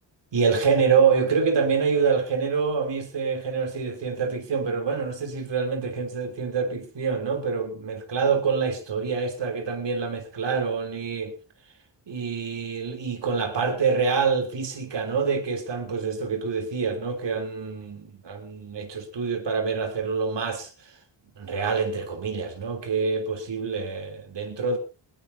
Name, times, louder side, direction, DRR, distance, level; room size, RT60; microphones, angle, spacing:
voice 1, 0.3-11.3 12.1-20.7 21.4-24.8, right 5 dB, 70° right, 3.2 m, -26 dB
20.0 x 17.5 x 2.7 m
wide cardioid pair, 105°, 45 cm